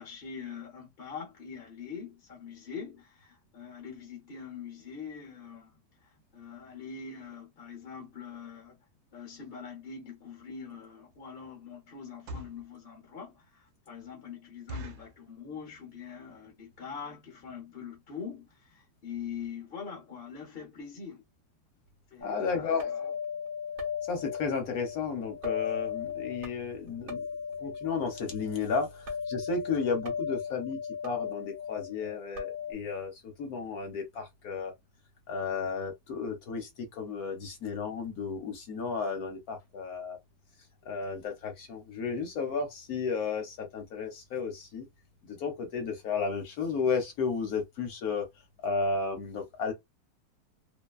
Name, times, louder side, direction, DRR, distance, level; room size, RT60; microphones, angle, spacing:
voice 1, 0.0-5.7 6.0-8.8 9.1-21.2 22.1-23.1, left 6 dB, 45° left, 0.8 m, -43 dB
sound 1, 11.1-11.3 12.0-12.7 13.2-13.3 13.7-13.8 14.1-14.2 14.7-15.2 15.8-16.1 16.3-16.4 16.7-16.9 17.5-17.6 17.8-18.0 18.3-18.4 18.6-18.7, equal, 75° right, 1.2 m, -42 dB
voice 2, 22.2-22.9 24.1-27.2 27.6-34.7 35.3-40.2 40.9-44.9 45.2-48.3 48.6-49.7, left 5 dB, 65° left, 1.2 m, -33 dB
sound 2, 22.2-32.7, left 7 dB, 50° right, 1.1 m, -37 dB
2.9 x 2.2 x 2.3 m
omnidirectional pair, 1.9 m